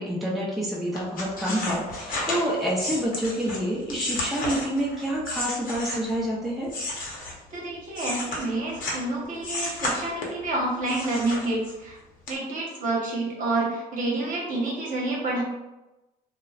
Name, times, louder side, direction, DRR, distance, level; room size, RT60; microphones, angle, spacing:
voice 1, 0.0-6.7, equal, ahead, -6 dB, 0.6 m, -28 dB
sound 1, 0.9-6.2 6.6-9.1 9.4-10.5 10.9-11.9 12.3-12.4, left 2 dB, 55° left, 0.8 m, -32 dB
voice 2, 7.5-12.0 12.3-15.4, right 2 dB, 55° right, -4 dB, 1.0 m, -28 dB
3.0 x 2.1 x 2.3 m, 1.0 s
cardioid pair, 110°, 17 cm